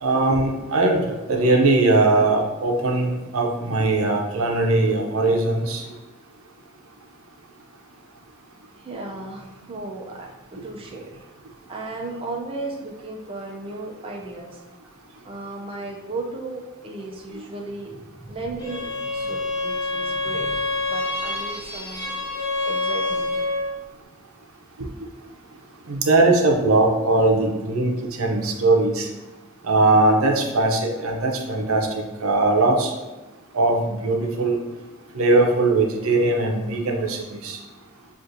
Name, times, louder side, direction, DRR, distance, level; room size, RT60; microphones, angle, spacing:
voice 1, 0.0-5.9 17.3-17.4 25.9-29.1 29.6-32.9 33.5-34.6 35.1-37.6, right 2 dB, 80° right, 1 dB, 0.7 m, -20 dB
voice 2, 8.8-11.3 11.7-14.6 15.2-22.1 22.6-23.5, right 2 dB, 25° right, -1 dB, 0.5 m, -35 dB
Bowed string instrument, 18.6-23.8, left 2 dB, 20° left, 0.9 m, -27 dB
6.1 x 2.5 x 2.6 m, 1.1 s
head